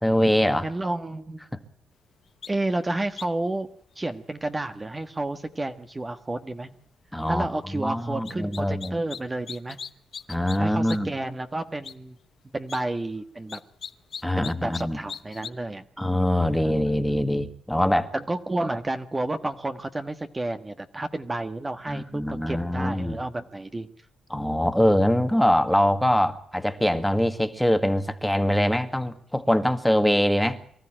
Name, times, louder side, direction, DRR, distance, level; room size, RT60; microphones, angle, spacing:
voice 1, 0.0-0.7 7.1-7.5 7.7-9.0 10.3-11.1 14.2-15.0 16.0-18.1 21.9-23.2 24.3-30.6, equal, 5° left, 9 dB, 1.9 m, -23 dB
voice 2, 0.6-1.4 2.5-3.7 3.9-6.7 7.3-9.8 10.6-12.2 12.5-13.6 14.4-15.8 16.6-17.0 18.1-23.9, right 2 dB, 20° right, 7 dB, 1.5 m, -31 dB
sound 1, 2.4-2.5 3.2-3.5 8.2-9.2 9.5-10.6 10.9-11.0 11.3-11.4 11.8-11.9 12.6-12.8 13.5-14.8 15.1-15.5, left 6 dB, 50° left, 1.0 m, -38 dB
24.0 x 13.5 x 8.9 m, 0.67 s
cardioid pair, 85°, 0 cm